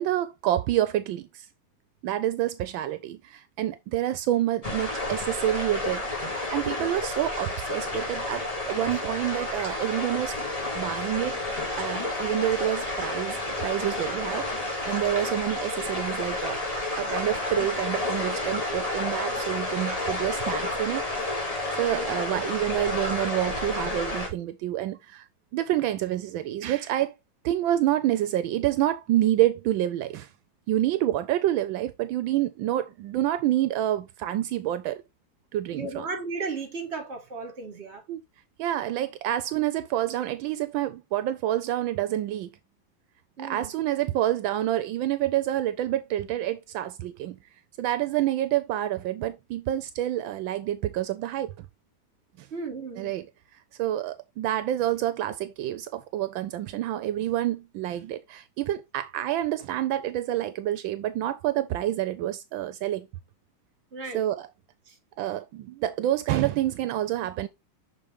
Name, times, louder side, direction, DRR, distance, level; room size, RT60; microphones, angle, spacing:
voice 1, 0.0-1.5 2.0-10.4 10.7-11.4 11.7-14.5 14.8-21.1 21.8-25.2 25.5-27.1 27.4-30.3 30.7-35.0 35.5-36.0 38.1-38.2 38.6-42.5 43.4-47.4 47.8-51.7 52.4-52.5 53.0-53.2 53.8-63.1 64.1-64.5 65.2-67.5, right 13 dB, 80° right, 1.3 m, -28 dB
sound 1, 4.6-24.3, left 2 dB, 20° left, 2.2 m, -30 dB
voice 2, 21.8-22.4 35.7-38.0 43.4-43.7 52.5-53.1 63.9-64.2 64.9-65.0, right 3 dB, 35° right, 1.8 m, -35 dB
6.5 x 4.4 x 3.4 m
omnidirectional pair, 2.1 m